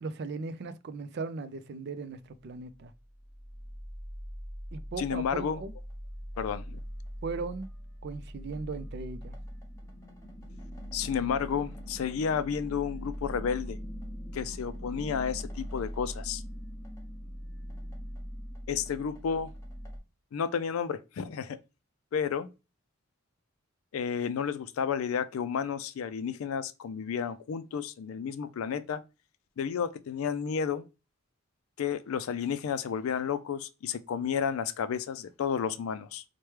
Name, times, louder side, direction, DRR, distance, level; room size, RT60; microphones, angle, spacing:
voice 1, 0.0-2.9 4.7-5.7 7.2-7.7 8.0-9.3, right 4 dB, 55° right, 0.4 m, -38 dB
sound 1, 2.8-20.0, equal, 15° left, 1.1 m, -42 dB
voice 2, 5.0-5.6 6.4-6.8 10.9-13.8 14.3-16.4 18.7-19.5 20.3-21.6 22.1-22.5 23.9-29.0 29.6-30.8 31.8-36.2, left 7 dB, 90° left, 0.4 m, -31 dB
4.5 x 2.2 x 3.0 m
head